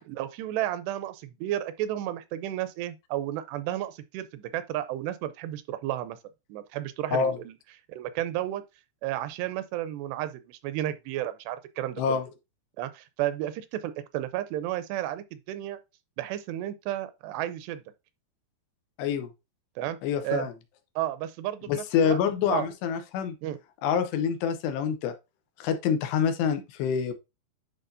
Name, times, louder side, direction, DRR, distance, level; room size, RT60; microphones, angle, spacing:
voice 1, 0.1-6.2 6.5-7.5 7.9-8.6 9.0-12.0 12.8-15.8 16.2-17.8 19.8-20.0 20.2-20.5 21.0-22.2 22.5-22.7 23.4-23.6, right 13 dB, 85° right, 2.7 m, -32 dB
voice 2, 12.0-12.3 19.0-19.3 20.0-20.5 21.7-23.4 23.8-25.1 25.6-27.1, left 7 dB, 90° left, 3.1 m, -26 dB
10.0 x 4.5 x 2.6 m
omnidirectional pair, 4.8 m